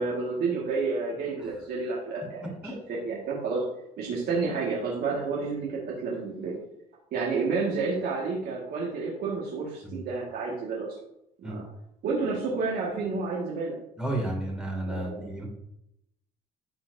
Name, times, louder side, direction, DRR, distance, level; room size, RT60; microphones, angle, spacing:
voice 1, 0.0-3.6 4.0-6.6 7.1-10.9 11.4-11.6 12.0-13.7 14.9-15.5, right 4 dB, 65° right, -5 dB, 1.7 m, -30 dB
voice 2, 14.0-15.5, right 1 dB, 5° right, -1 dB, 2.4 m, -32 dB
11.5 x 4.4 x 2.7 m, 0.79 s
cardioid pair, 110°, 17 cm